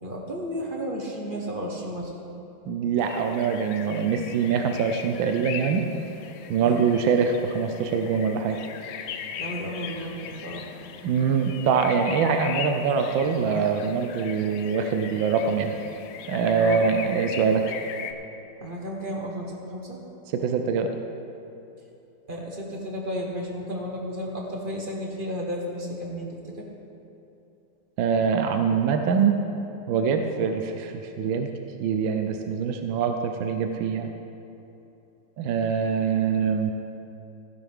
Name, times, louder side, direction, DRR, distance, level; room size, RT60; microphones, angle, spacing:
voice 1, 0.0-2.1 6.6-6.8 9.3-10.7 16.6-17.0 18.6-20.0 22.3-26.7, equal, 30° right, -1 dB, 1.3 m, -33 dB
voice 2, 2.7-5.8 6.5-8.6 11.0-15.7 16.3-17.8 20.3-20.9 28.0-29.4 29.9-31.5 31.8-34.1 35.4-36.7, right 6 dB, 75° right, 5 dB, 1.4 m, -24 dB
sound 1, 3.0-18.1, left 7 dB, 85° left, 1.5 m, -39 dB
15.5 x 10.5 x 3.6 m, 2.9 s
omnidirectional pair, 2.2 m